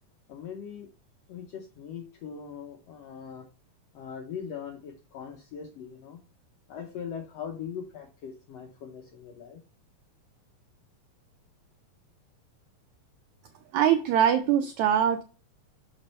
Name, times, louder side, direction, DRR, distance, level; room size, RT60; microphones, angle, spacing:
voice 1, 0.3-0.9 1.3-3.5 3.9-6.2 6.7-9.6, left 7 dB, 85° left, 1.4 m, -40 dB
voice 2, 13.7-15.2, right 9 dB, 85° right, 1.6 m, -22 dB
6.5 x 5.4 x 4.1 m
omnidirectional pair, 4.0 m